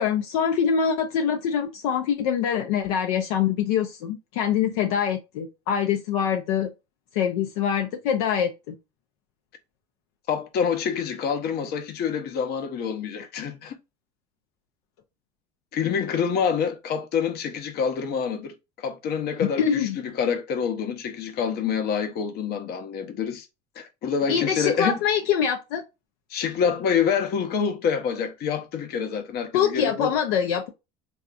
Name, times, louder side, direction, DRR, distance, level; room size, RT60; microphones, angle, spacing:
voice 1, 0.0-6.7 7.1-8.7 19.4-20.0 24.3-25.8 29.5-30.7, left 8 dB, 75° left, 0.6 m, -24 dB
voice 2, 10.3-13.8 15.7-19.9 20.2-23.5 23.8-25.0 26.3-30.1, left 7 dB, 50° left, 0.8 m, -27 dB
3.5 x 2.6 x 2.5 m
hypercardioid pair, 90°, 21 cm